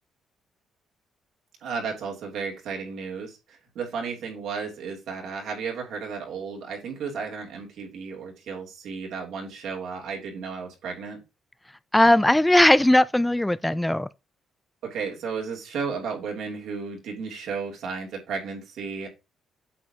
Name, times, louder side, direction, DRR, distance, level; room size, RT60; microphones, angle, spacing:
voice 1, 1.6-11.2 14.8-19.1, right 5 dB, 80° right, 2.6 m, -33 dB
voice 2, 11.9-14.1, left 1 dB, 10° left, 0.3 m, -18 dB
8.5 x 6.1 x 2.8 m
cardioid pair, 90°, 0 cm